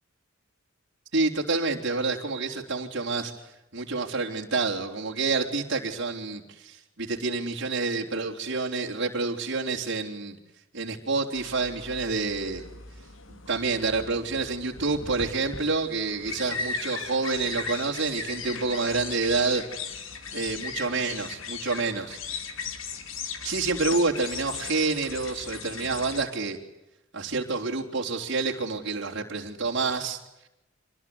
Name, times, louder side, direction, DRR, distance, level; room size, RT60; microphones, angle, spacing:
voice 1, 1.1-3.3 3.7-10.4 10.7-12.6 13.3-19.6 20.3-22.4 23.4-26.6 27.1-30.2, right 3 dB, 60° right, -1 dB, 3.9 m, -28 dB
sound 1, 11.4-26.3, left 5 dB, 70° left, 3.0 m, -38 dB
26.5 x 20.5 x 9.7 m, 0.91 s
head